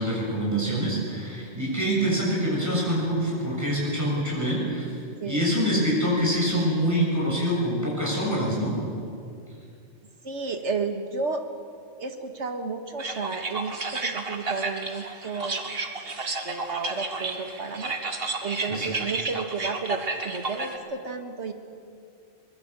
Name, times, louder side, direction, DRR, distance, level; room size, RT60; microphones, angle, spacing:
voice 1, 0.0-5.0 5.2-8.8 18.7-18.9, equal, 15° right, -4 dB, 7.3 m, -25 dB
voice 2, 5.2-5.5 10.2-11.4 12.0-15.7 16.4-18.0 18.4-21.5, right 4 dB, 75° right, 6 dB, 2.0 m, -32 dB
sound 1, 13.0-20.8, right 3 dB, 55° right, 1.8 m, -32 dB
23.0 x 20.5 x 8.2 m, 2.5 s
omnidirectional pair, 1.2 m